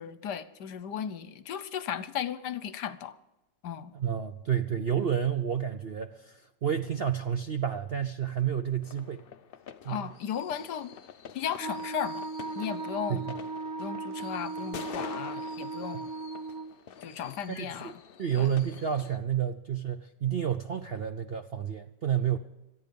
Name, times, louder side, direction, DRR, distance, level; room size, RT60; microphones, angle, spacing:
voice 1, 0.0-3.2 3.6-3.9 9.9-10.9 11.3-12.2 12.6-13.3 13.8-16.1 17.0-17.9 18.3-18.5, left 9 dB, 70° left, 14 dB, 1.4 m, -35 dB
voice 2, 3.9-9.2 9.8-10.1 13.1-13.3 15.9-16.1 17.5-17.9 18.2-22.4, right 9 dB, 60° right, 8 dB, 0.6 m, -30 dB
sound 1, 8.8-19.2, left 7 dB, 85° left, 0.5 m, -47 dB
Wind instrument woodwind instrument, 11.6-16.7, right 3 dB, 15° right, 1.1 m, -37 dB
25.5 x 9.1 x 5.3 m, 0.93 s
omnidirectional pair, 1.9 m